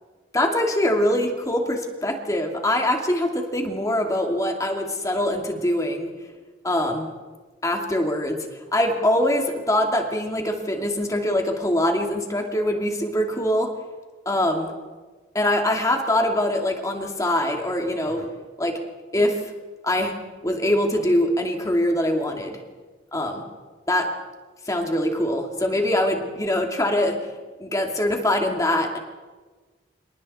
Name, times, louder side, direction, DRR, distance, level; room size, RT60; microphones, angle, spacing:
voice 1, 0.3-6.1 6.6-7.1 7.6-8.5 8.7-13.7 14.3-14.7 15.3-18.3 18.6-18.8 19.1-19.5 19.8-20.2 20.4-22.6 23.1-23.4 23.9-24.1 24.7-27.2 27.6-29.0, left 1 dB, 15° left, 3 dB, 2.5 m, -23 dB
29.5 x 27.0 x 4.3 m, 1.3 s
head